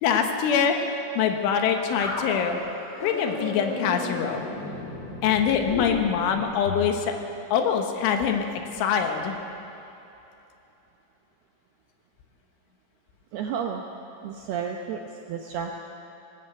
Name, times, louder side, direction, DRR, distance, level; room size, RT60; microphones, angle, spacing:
voice 1, 0.0-2.6 3.0-4.4 5.2-7.1 7.5-8.5 8.7-9.4, left 7 dB, 75° left, 5 dB, 3.7 m, -24 dB
sound 1, 2.0-6.9, left 2 dB, 45° left, 1.1 m, -34 dB
voice 2, 13.3-13.8 14.2-15.0 15.3-15.8, right 7 dB, 75° right, 2 dB, 2.3 m, -31 dB
20.5 x 18.0 x 8.0 m, 2.9 s
omnidirectional pair, 5.8 m